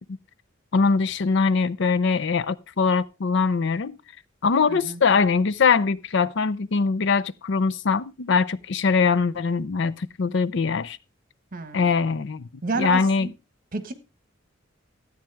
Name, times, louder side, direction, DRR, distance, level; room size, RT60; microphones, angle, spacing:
voice 1, 0.7-4.0 4.4-11.0 11.7-12.5 12.8-13.3, left 5 dB, 65° left, 0.5 m, -22 dB
voice 2, 4.7-5.0 11.5-11.9 12.6-13.3 13.7-13.9, right 3 dB, 45° right, 1.4 m, -30 dB
13.5 x 8.8 x 3.4 m
head